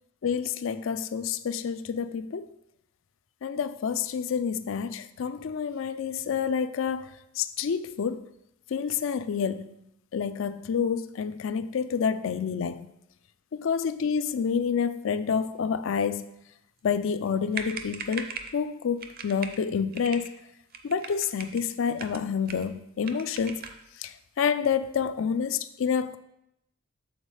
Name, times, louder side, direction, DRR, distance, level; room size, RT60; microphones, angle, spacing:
voice 1, 0.2-2.5 3.4-7.1 7.4-8.2 8.7-9.7 10.1-12.8 13.5-16.3 16.8-20.3 20.8-23.6 24.0-26.2, left 6 dB, 65° left, 0.4 m, -28 dB
sound 1, 17.3-17.4 17.5-18.6 19.0-19.6 19.9-20.3 20.7-21.6 22.0-22.7 23.0-23.8, right 6 dB, 45° right, 0.6 m, -39 dB
7.2 x 4.0 x 4.9 m
head